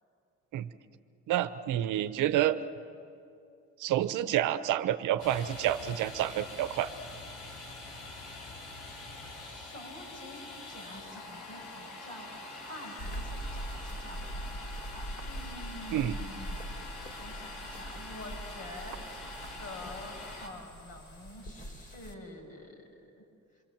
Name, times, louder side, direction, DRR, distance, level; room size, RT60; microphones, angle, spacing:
voice 1, 1.3-2.6 3.8-6.9 15.9-16.1, right 12 dB, 90° right, 11 dB, 0.9 m, -28 dB
Domestic sounds home sounds, 5.2-20.5, left 2 dB, 80° left, 3.9 m, -45 dB
voice 2, 8.1-8.6 9.4-10.4 10.7-12.3 12.6-16.6 17.2-19.0 19.6-23.2, left 1 dB, 55° left, 0 dB, 7.2 m, -47 dB
sound 1, 13.0-22.1, right 1 dB, 35° left, 4.3 m, -42 dB
27.5 x 23.0 x 7.4 m, 2.6 s
cardioid pair, 90°, 30 cm